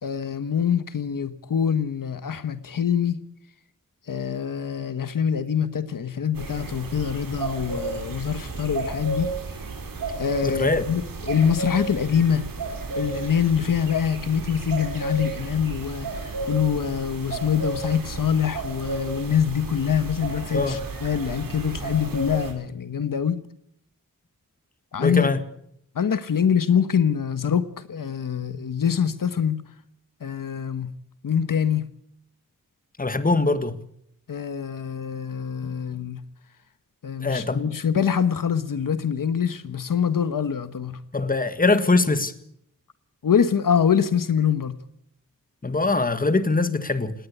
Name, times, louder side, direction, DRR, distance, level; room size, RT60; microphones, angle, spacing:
voice 1, 0.0-3.2 4.1-9.3 10.2-12.5 13.0-23.4 24.9-25.3 25.9-29.6 30.2-30.9 31.2-31.9 34.3-36.2 37.0-41.0 43.2-44.8, left 8 dB, 75° left, 1.4 m, -24 dB
sound 1, 6.3-22.5, right 4 dB, 80° right, 5.1 m, -33 dB
voice 2, 10.4-10.9 20.5-20.8 25.0-25.4 33.0-33.8 37.2-37.6 41.1-42.3 45.6-47.1, left 3 dB, 25° left, 1.7 m, -22 dB
19.5 x 19.0 x 8.1 m
wide cardioid pair, 100°, 33 cm